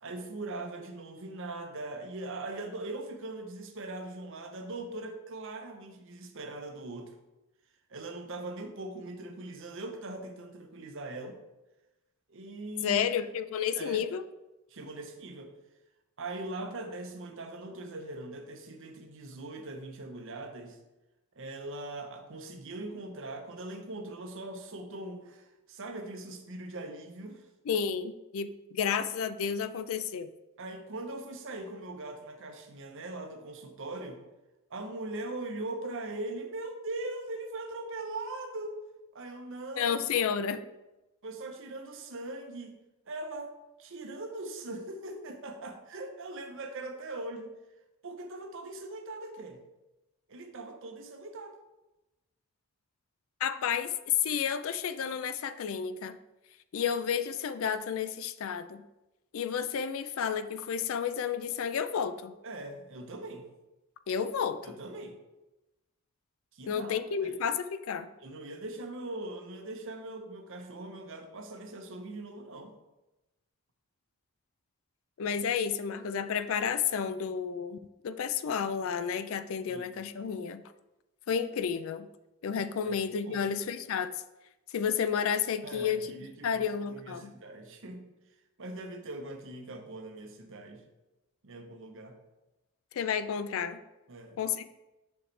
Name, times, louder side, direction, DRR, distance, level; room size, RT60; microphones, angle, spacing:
voice 1, 0.0-7.1 7.9-11.4 12.3-13.0 13.7-14.0 14.7-15.5 16.2-20.8 21.3-27.5 30.6-34.2 34.7-38.8 39.1-39.9 41.2-42.8 43.1-43.5 43.8-47.5 48.0-49.6 50.3-51.6 62.4-63.5 64.6-65.2 66.5-67.4 68.2-72.7 79.7-79.9 82.8-83.0 83.2-83.5 85.6-88.1 88.6-90.8 91.4-92.2 94.1-94.4, right 2 dB, 60° right, 5 dB, 0.7 m, -41 dB
voice 2, 12.8-14.2 27.7-30.3 39.8-40.6 53.4-56.2 56.7-58.8 59.3-62.3 64.1-64.7 66.7-68.1 75.2-77.8 78.0-80.6 81.3-82.1 82.4-84.1 84.7-86.1 86.4-87.3 92.9-93.8 94.4-94.7, left 7 dB, 60° left, 12 dB, 0.3 m, -31 dB
6.4 x 5.1 x 3.2 m, 1.0 s
head